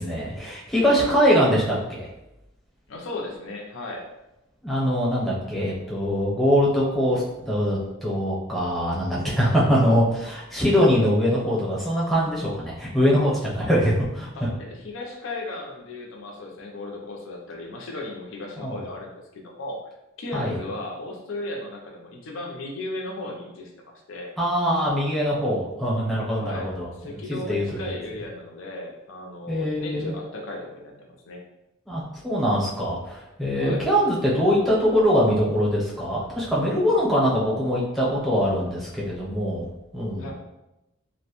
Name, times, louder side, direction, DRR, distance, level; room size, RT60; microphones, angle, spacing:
voice 1, 0.0-2.1 4.6-14.3 18.6-18.8 20.3-20.6 24.4-27.9 29.5-30.1 31.9-39.7 39.9-40.3, equal, ahead, -7 dB, 0.6 m, -23 dB
voice 2, 0.8-1.2 2.9-4.1 14.4-19.8 20.2-23.7 24.1-24.3 26.4-31.4 33.5-33.8 40.2-40.3, left 2 dB, 80° left, 0 dB, 0.5 m, -36 dB
2.5 x 2.1 x 2.9 m, 0.93 s
head